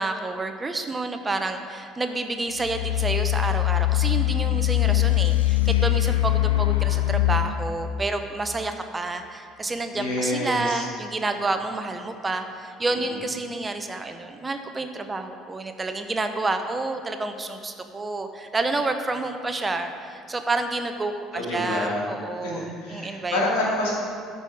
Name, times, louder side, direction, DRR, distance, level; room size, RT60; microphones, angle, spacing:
voice 1, 0.0-23.4, right 3 dB, 20° right, 7 dB, 0.8 m, -29 dB
sound 1, 2.6-7.6, left 16 dB, 85° left, 0.4 m, -22 dB
voice 2, 9.9-10.9 12.9-13.2 21.3-22.0 22.4-23.9, left 1 dB, 70° left, -4 dB, 2.3 m, -28 dB
13.5 x 5.5 x 4.8 m, 2.2 s
figure-of-eight pair, 55°, 0 cm